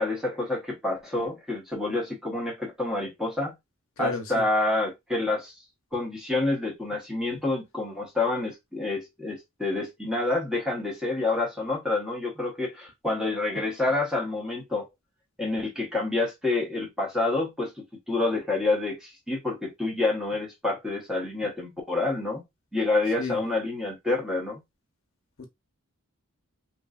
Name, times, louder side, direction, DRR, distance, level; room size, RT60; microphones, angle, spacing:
voice 1, 0.0-3.5 4.0-5.5 5.9-14.9 15.4-22.4 22.7-24.6, left 2 dB, 5° right, 0.9 m, -28 dB
voice 2, 4.0-4.4 7.3-7.4 23.2-23.4 25.4-25.5, left 4 dB, 65° left, 0.7 m, -33 dB
3.0 x 2.5 x 2.3 m
head